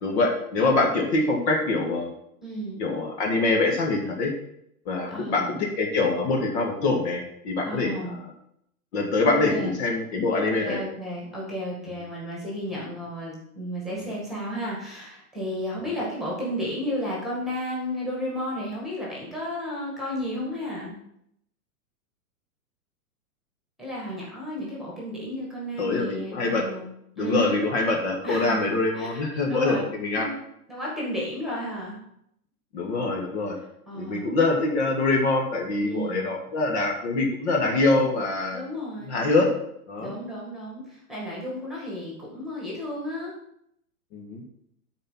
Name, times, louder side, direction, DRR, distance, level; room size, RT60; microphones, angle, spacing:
voice 1, 0.0-2.1 2.8-4.3 4.9-8.2 8.9-10.8 11.9-12.0 25.8-26.6 27.2-30.3 32.7-33.6 33.9-38.6 39.1-39.5 39.9-40.1 44.1-44.4, left 3 dB, 45° left, 2 dB, 1.7 m, -24 dB
voice 2, 2.4-2.8 5.1-5.6 7.6-8.2 9.2-9.8 10.4-21.0 23.8-26.9 27.2-27.6 28.2-28.7 28.9-29.2 29.5-30.4 30.7-32.0 33.9-34.3 35.8-36.3 38.5-39.3 40.0-43.3, equal, ahead, -4 dB, 1.9 m, -33 dB
9.9 x 4.5 x 5.8 m, 0.74 s
hypercardioid pair, 160°, 46 cm